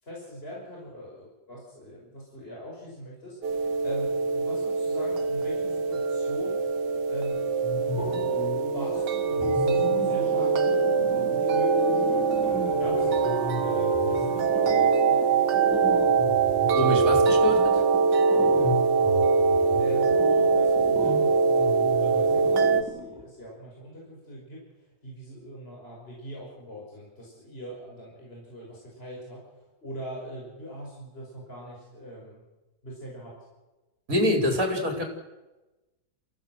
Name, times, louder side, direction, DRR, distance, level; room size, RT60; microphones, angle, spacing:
voice 1, 0.0-6.6 7.1-7.4 8.0-8.1 8.7-15.5 19.8-24.6 25.0-29.4 29.8-32.4 32.8-33.4, equal, 35° left, -3 dB, 6.2 m, -41 dB
sound 1, 3.4-22.8, right 5 dB, 75° right, 1.8 m, -23 dB
sound 2, 7.6-9.0 9.4-23.3, equal, 5° right, 4.2 m, -36 dB
voice 2, 16.7-17.8 34.1-35.0, left 1 dB, 50° right, 3 dB, 4.9 m, -25 dB
28.0 x 16.0 x 8.0 m, 1.1 s
omnidirectional pair, 1.8 m